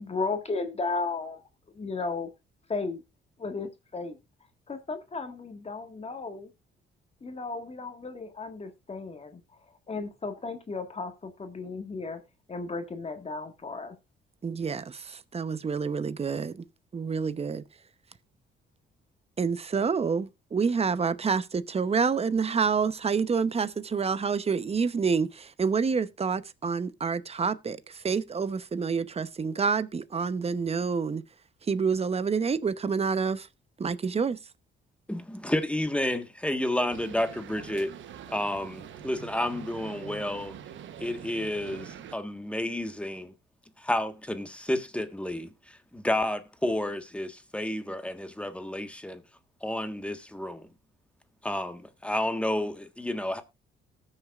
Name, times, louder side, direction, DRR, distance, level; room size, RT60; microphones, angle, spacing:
voice 1, 0.0-1.4 1.7-2.3 2.7-3.0 3.4-4.2 4.7-6.5 7.2-9.4 9.9-12.2 12.5-13.9, left 3 dB, 30° left, 1.7 m, -34 dB
voice 2, 14.4-16.6 16.9-17.6 19.4-31.2 31.7-33.5 33.8-34.4, right 5 dB, 30° right, 0.8 m, -28 dB
voice 3, 35.1-37.9 38.3-40.6 41.0-43.3 43.8-49.2 49.6-50.7 51.4-53.4, left 1 dB, 5° left, 1.4 m, -31 dB
sound 1, 36.9-42.2, right 9 dB, 75° right, 1.0 m, -44 dB
19.0 x 6.5 x 2.4 m
cardioid pair, 90°, 20 cm